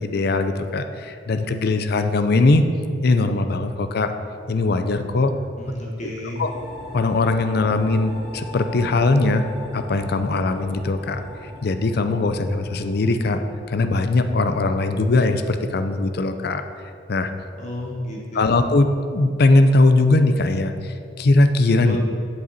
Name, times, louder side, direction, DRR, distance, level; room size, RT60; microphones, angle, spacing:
voice 1, 0.0-2.6 3.0-4.1 4.5-5.3 6.4-6.5 6.9-9.5 9.7-11.2 11.6-13.4 13.7-16.6 17.1-17.3 18.3-22.0, left 2 dB, 60° left, 9 dB, 0.5 m, -20 dB
voice 2, 5.6-6.4 17.6-18.4 21.8-22.0, left 1 dB, 40° left, -3 dB, 1.2 m, -31 dB
sound 1, 6.4-15.9, left 1 dB, 30° right, 1.9 m, -40 dB
7.9 x 7.1 x 4.1 m, 2.4 s
head